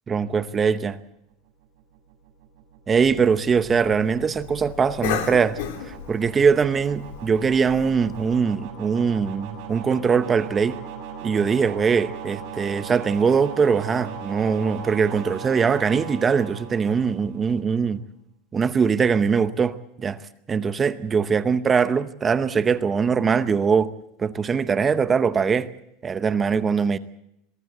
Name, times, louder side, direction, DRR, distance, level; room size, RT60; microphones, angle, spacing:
voice 1, 0.1-1.0 2.9-5.6 6.1-10.8 11.2-18.0 18.5-20.2 20.5-23.9 24.2-25.7 26.0-27.0, right 6 dB, 20° right, 0.8 m, -22 dB
sound 1, 1.5-17.6, right 7 dB, 50° right, 6.1 m, -39 dB
Cough, 2.9-8.4, left 9 dB, 75° left, 3.6 m, -35 dB
23.0 x 15.0 x 8.1 m
supercardioid pair, 160°, 0 cm